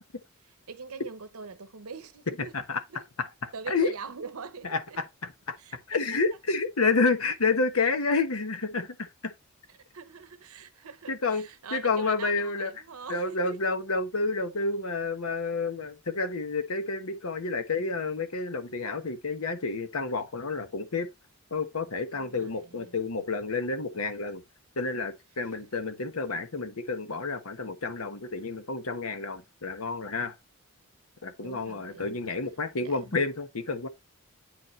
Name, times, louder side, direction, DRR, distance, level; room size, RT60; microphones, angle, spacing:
voice 1, 0.4-2.5 2.9-3.1 3.5-5.0 5.6-6.0 9.7-13.6 22.1-23.0 31.4-32.2 32.8-33.2, right 5 dB, 80° right, 0.9 m, -43 dB
voice 2, 3.2-3.9 4.6-5.5 5.9-9.3 11.1-11.4 11.7-12.7 13.1-21.1 21.5-24.4 24.8-30.3 31.2-33.9, left 3 dB, 75° left, 1.1 m, -29 dB
8.5 x 5.2 x 3.1 m
head